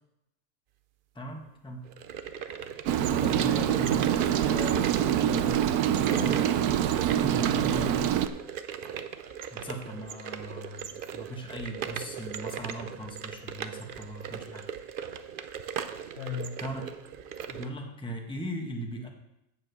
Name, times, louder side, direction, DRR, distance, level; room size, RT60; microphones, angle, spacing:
voice 1, 1.1-1.9 7.2-7.6 9.5-14.6 16.0-16.9 17.5-19.1, right 1 dB, 5° left, 2 dB, 1.1 m, -39 dB
sound 1, 1.8-17.7, right 7 dB, 70° right, 0.5 m, -38 dB
Rain, 2.9-8.3, right 11 dB, 85° right, 1.1 m, -25 dB
voice 2, 3.1-5.6 5.9-8.1 16.2-16.6, left 7 dB, 65° left, 6 dB, 1.2 m, -38 dB
8.3 x 7.2 x 6.8 m, 0.86 s
omnidirectional pair, 1.6 m